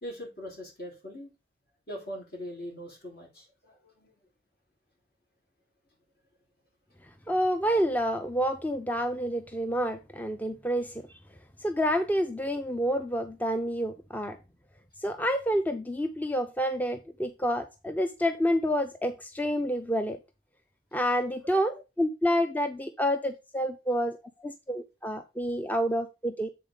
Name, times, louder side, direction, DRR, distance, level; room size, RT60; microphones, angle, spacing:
voice 1, 0.0-1.3 1.9-4.2, equal, 60° left, 3.3 m, -41 dB
voice 2, 7.3-11.1 11.6-14.4 15.0-20.2 20.9-24.2 24.4-26.5, equal, 10° left, 0.4 m, -28 dB
7.8 x 4.0 x 5.0 m
head